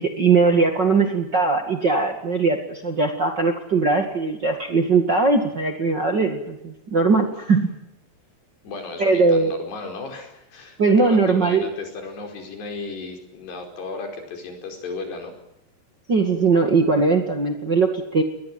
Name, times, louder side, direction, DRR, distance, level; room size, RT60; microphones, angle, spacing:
voice 1, 0.0-7.7 9.0-9.6 10.8-11.7 16.1-18.2, right 4 dB, 35° right, 4 dB, 1.9 m, -20 dB
voice 2, 8.6-15.3, left 4 dB, 75° left, 4 dB, 6.9 m, -35 dB
22.0 x 20.5 x 9.4 m, 0.85 s
omnidirectional pair, 4.8 m